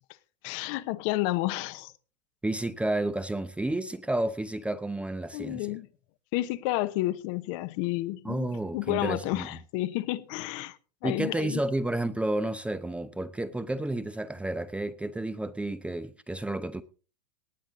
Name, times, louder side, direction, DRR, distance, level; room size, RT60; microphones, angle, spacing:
voice 1, 0.4-1.9 5.3-5.9 6.3-8.5 8.7-10.8 11.0-11.6, left 17 dB, 50° left, 1.0 m, -30 dB
voice 2, 2.4-5.7 8.2-9.5 11.0-16.8, right 1 dB, 5° right, 0.7 m, -31 dB
18.5 x 8.9 x 3.9 m
hypercardioid pair, 105°, 21 cm